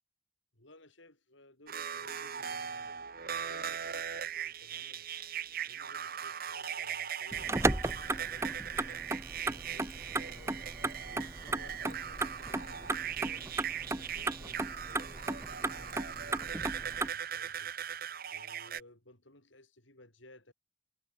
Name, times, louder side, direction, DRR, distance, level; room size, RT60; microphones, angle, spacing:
voice 1, 0.5-5.1 5.7-9.1 9.4-10.7 11.0-13.6 13.9-18.0 18.3-20.5, left 1 dB, 65° left, 6.8 m, -58 dB
sound 1, 1.7-18.8, right 8 dB, 45° right, 1.7 m, -39 dB
Motor vehicle (road), 7.3-17.1, right 2 dB, 15° right, 0.8 m, -35 dB
head